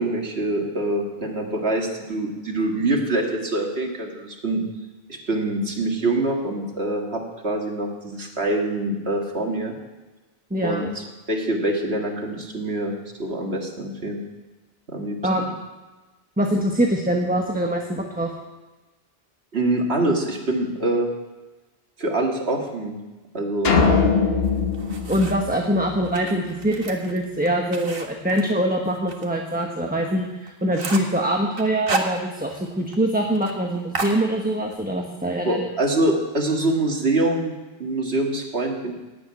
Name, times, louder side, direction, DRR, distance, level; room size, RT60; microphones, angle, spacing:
voice 1, 0.0-4.6 5.1-9.7 10.6-10.9 11.3-12.9 13.2-14.2 14.9-15.5 19.5-21.1 22.0-22.9 23.3-23.7 35.4-37.5 37.8-38.9, right 2 dB, 80° right, 1 dB, 2.4 m, -25 dB
voice 2, 10.5-10.9 15.2-15.5 16.4-18.3 25.1-35.7, right 1 dB, 10° right, 1 dB, 1.1 m, -24 dB
sound 1, 23.6-26.2, left 5 dB, 70° left, 1.6 m, -21 dB
sound 2, 24.4-25.6 26.0-29.3 29.6-29.7 30.1-30.2 30.5-31.2 31.6-32.7 32.9-33.0 33.3-33.6 33.9-34.8, right 3 dB, 60° right, 1.6 m, -32 dB
16.5 x 7.0 x 9.6 m, 1.2 s
omnidirectional pair, 1.1 m